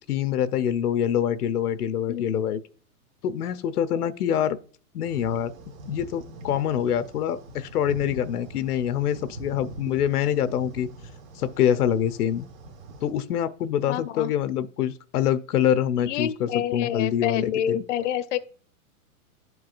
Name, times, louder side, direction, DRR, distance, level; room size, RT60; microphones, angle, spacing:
voice 1, 0.1-2.6 3.2-4.6 4.9-5.5 5.9-10.9 11.4-12.5 13.0-17.8, left 9 dB, 85° left, 0.7 m, -25 dB
voice 2, 2.1-2.4 13.9-14.3 16.0-18.4, left 11 dB, 55° left, 0.6 m, -28 dB
sound 1, 5.0-13.1, right 3 dB, 65° right, 1.6 m, -43 dB
11.0 x 4.7 x 2.4 m
hypercardioid pair, 160°, 44 cm